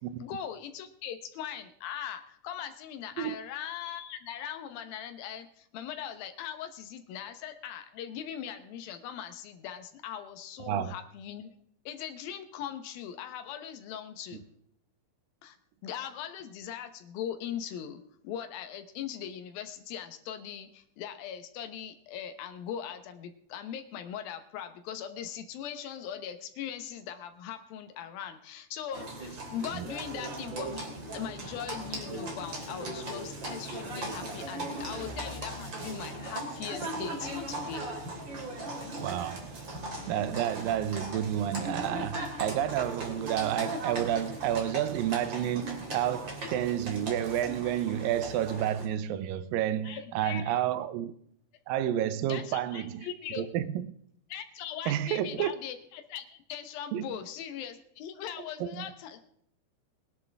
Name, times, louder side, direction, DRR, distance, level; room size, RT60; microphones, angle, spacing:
voice 1, 0.2-11.5 11.9-14.4 15.4-15.6 15.8-37.9 49.8-50.6 52.3-53.5 54.3-59.2, left 9 dB, 90° left, 2.9 m, -40 dB
Livestock farm animals working animals, 28.9-48.8, right 1 dB, 35° right, 3.0 m, -38 dB
voice 2, 39.0-51.1 51.7-53.1 53.4-53.9 54.9-55.5 56.9-57.0 58.6-58.9, right 11 dB, 80° right, 2.5 m, -30 dB
21.0 x 11.0 x 3.5 m
omnidirectional pair, 4.1 m